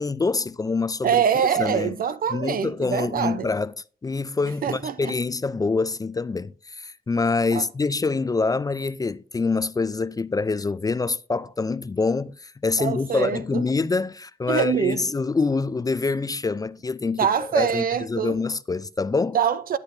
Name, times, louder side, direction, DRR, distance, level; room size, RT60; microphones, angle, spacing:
voice 1, 0.0-1.2 1.5-1.9 2.3-3.7 4.0-19.4, left 4 dB, 25° left, 0.3 m, -25 dB
voice 2, 1.0-3.5 4.6-5.1 7.5-7.6 12.8-13.6 14.5-15.0 17.2-18.3 19.3-19.8, right 8 dB, 65° right, 0.6 m, -24 dB
9.8 x 8.6 x 2.6 m
cardioid pair, 80°, 16 cm